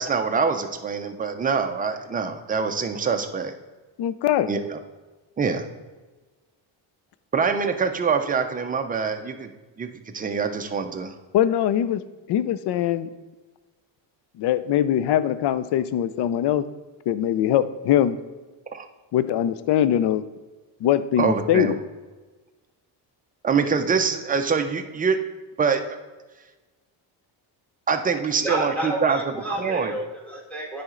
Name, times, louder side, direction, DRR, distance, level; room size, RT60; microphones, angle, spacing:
voice 1, 0.0-3.5 4.5-4.8 5.4-5.6 7.3-9.5 9.8-11.1 18.7-18.9 21.2-21.8 23.4-25.2 25.6-26.0 27.9-29.2 29.6-29.9, right 5 dB, 20° right, 6 dB, 0.5 m, -24 dB
voice 2, 4.0-4.5 11.3-12.0 12.3-13.1 14.4-16.6 17.1-18.2 19.1-20.2 20.8-21.8, left 11 dB, 60° left, 14 dB, 0.5 m, -22 dB
voice 3, 28.3-30.8, right 1 dB, 5° left, -2 dB, 1.9 m, -30 dB
9.6 x 4.3 x 3.8 m, 1.2 s
cardioid pair, 110°, 48 cm